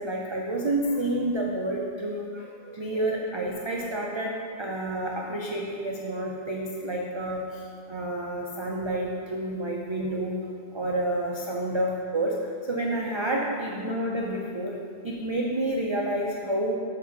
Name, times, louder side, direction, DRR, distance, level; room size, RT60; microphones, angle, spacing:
voice 1, 0.0-10.4 10.7-12.4 12.7-14.8 15.0-16.7, right 1 dB, 40° right, -2 dB, 0.4 m, -29 dB
6.6 x 3.6 x 5.9 m, 2.3 s
omnidirectional pair, 1.1 m